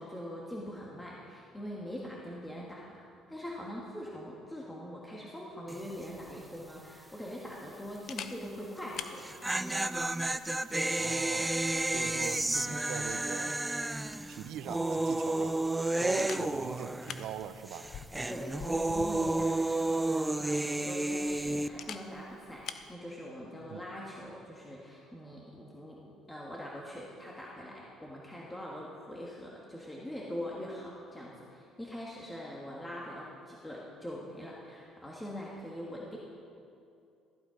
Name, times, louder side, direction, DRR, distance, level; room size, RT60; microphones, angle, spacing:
voice 1, 0.0-3.0 3.3-9.3 18.3-36.2, equal, 10° left, -4 dB, 1.6 m, -43 dB
sound 1, 5.7-6.0 6.3-6.4 9.0-17.4 17.7-21.7, right 2 dB, 10° right, 0.4 m, -31 dB
Camera, 6.2-22.9, left 7 dB, 60° left, 0.7 m, -50 dB
voice 2, 11.0-11.5 11.9-13.8 14.3-15.6 16.0-17.9 23.7-23.8, right 10 dB, 75° right, 12 dB, 0.5 m, -42 dB
14.5 x 8.4 x 5.1 m, 2.5 s
cardioid pair, 90°, 0 cm